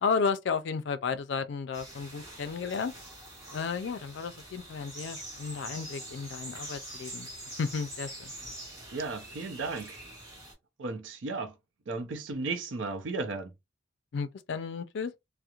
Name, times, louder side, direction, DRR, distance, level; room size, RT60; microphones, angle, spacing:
voice 1, 0.0-2.9 3.5-7.3 7.6-8.3 14.1-15.1, left 5 dB, 65° left, 0.4 m, -33 dB
sound 1, 1.7-10.5, right 1 dB, 20° right, 1.0 m, -44 dB
voice 2, 8.9-10.0 10.8-11.6 11.9-13.5, right 3 dB, 75° right, 0.6 m, -35 dB
2.9 x 2.0 x 2.3 m
head